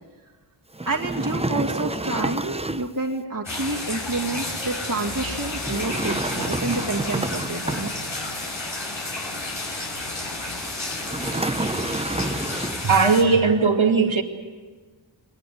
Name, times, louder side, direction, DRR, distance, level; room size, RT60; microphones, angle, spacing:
sound 1, 0.7-3.0 5.5-8.3 11.0-13.0, right 2 dB, 15° right, 0.8 m, -29 dB
voice 1, 0.9-8.1, right 3 dB, 45° right, -2 dB, 2.4 m, -29 dB
sound 2, 3.4-13.2, left 2 dB, 75° left, 5.0 m, -31 dB
voice 2, 12.8-14.2, right 4 dB, 80° right, 4 dB, 2.5 m, -18 dB
22.5 x 19.5 x 9.4 m, 1.4 s
wide cardioid pair, 50°, 47 cm